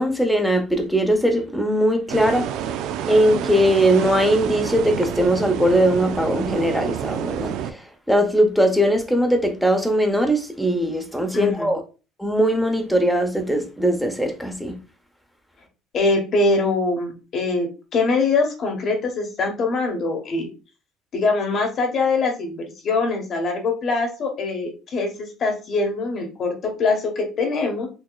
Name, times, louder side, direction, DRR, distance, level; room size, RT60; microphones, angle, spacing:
voice 1, 0.0-2.5 3.1-11.8 12.2-14.8, equal, ahead, 0.8 m, -20 dB
sound 1, 2.1-7.7, right 9 dB, 70° right, 0.3 m, -28 dB
voice 2, 11.3-11.7 15.9-17.7 17.9-20.5 21.1-27.9, left 3 dB, 50° left, 1.3 m, -23 dB
4.4 x 2.8 x 2.3 m
cardioid pair, 105°, 0 cm